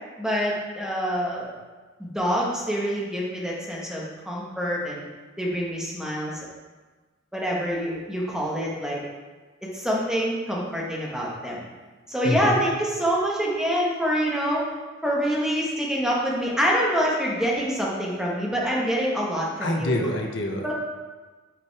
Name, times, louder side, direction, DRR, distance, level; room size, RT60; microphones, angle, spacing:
voice 1, 0.2-1.5 2.0-5.0 5.4-6.4 7.3-9.0 9.6-11.7 12.1-14.7 15.0-20.0 20.6-20.7, equal, 5° right, -4 dB, 1.1 m, -26 dB
voice 2, 12.2-12.6 19.6-20.7, left 1 dB, 65° left, 3 dB, 0.8 m, -26 dB
5.9 x 5.1 x 4.6 m, 1.3 s
head